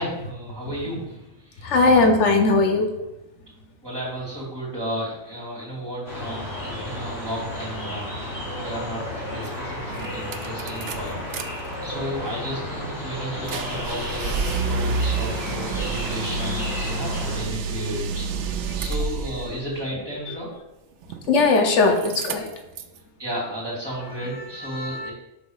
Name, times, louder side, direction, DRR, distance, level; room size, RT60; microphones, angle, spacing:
voice 1, 0.0-1.8 3.8-8.1 8.6-11.2 11.8-18.2 18.8-20.5 23.2-25.1, equal, 20° right, -6 dB, 2.6 m, -33 dB
voice 2, 1.6-2.9 21.3-22.5 24.7-25.1, left 3 dB, 85° left, 4 dB, 1.2 m, -19 dB
sound 1, 6.1-17.4, left 1 dB, 65° left, 2.3 m, -33 dB
sound 2, 9.5-9.6 9.9-11.4 11.8-19.5 21.0-21.7 22.0-23.0, right 4 dB, 80° right, 0.9 m, -29 dB
5.7 x 3.9 x 5.5 m, 0.96 s
omnidirectional pair, 1.2 m